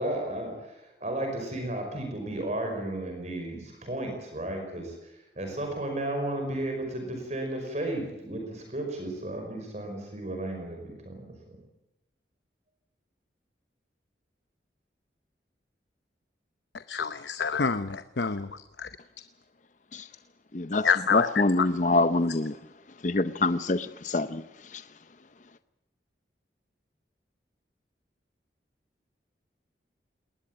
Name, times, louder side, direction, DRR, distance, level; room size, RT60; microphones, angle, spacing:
voice 1, 0.0-11.6, right 1 dB, 40° right, 5.4 m, -34 dB
voice 2, 16.9-18.9 20.7-21.7, left 5 dB, 75° left, 0.8 m, -27 dB
voice 3, 20.5-22.6 23.0-24.4 24.7-24.8, left 2 dB, 45° left, 0.7 m, -26 dB
20.0 x 19.5 x 9.0 m
head